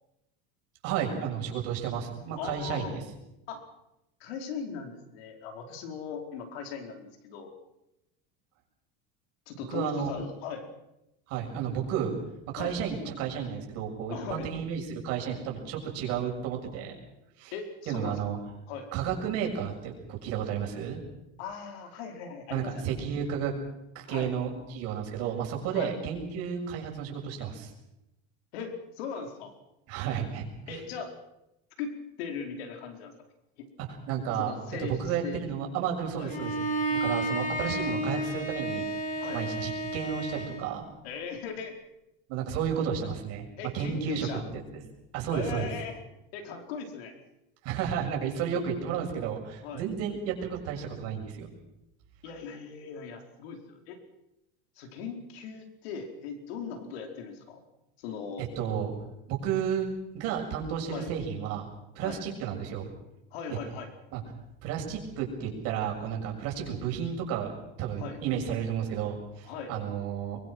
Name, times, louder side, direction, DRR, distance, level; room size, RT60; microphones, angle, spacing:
voice 1, 0.8-2.9 9.7-10.1 11.3-12.1 12.5-16.9 17.4-17.5 17.9-18.4 18.9-21.0 22.5-23.5 24.0-27.7 29.9-30.8 34.1-34.5 34.8-38.9 39.3-40.9 42.3-43.5 43.7-44.3 45.1-45.7 47.6-51.5 58.4-58.9 59.3-59.9 60.1-61.7 62.0-62.9 63.5-63.6 64.1-64.2 64.6-67.5 67.8-70.4, right 8 dB, 55° right, 1 dB, 6.9 m, -32 dB
voice 2, 2.3-3.0 3.5-3.6 4.2-7.5 9.5-10.7 12.5-12.8 14.1-14.5 17.5-18.2 18.7-18.9 21.4-23.0 24.1-24.3 25.7-26.0 28.5-29.5 30.7-31.1 31.8-33.1 33.6-33.7 34.3-35.4 36.2-36.3 39.2-39.4 41.0-41.8 43.6-44.5 45.3-46.0 46.3-47.1 49.6-49.8 52.2-54.0 54.8-57.6 58.0-58.5 60.9-61.1 62.0-62.2 63.3-63.9 68.0-68.2 69.4-69.7, left 6 dB, 90° left, 4 dB, 4.8 m, -39 dB
Bowed string instrument, 36.3-40.7, right 1 dB, 25° left, 3.6 m, -31 dB
23.5 x 23.0 x 6.3 m, 0.89 s
cardioid pair, 150°, 30 cm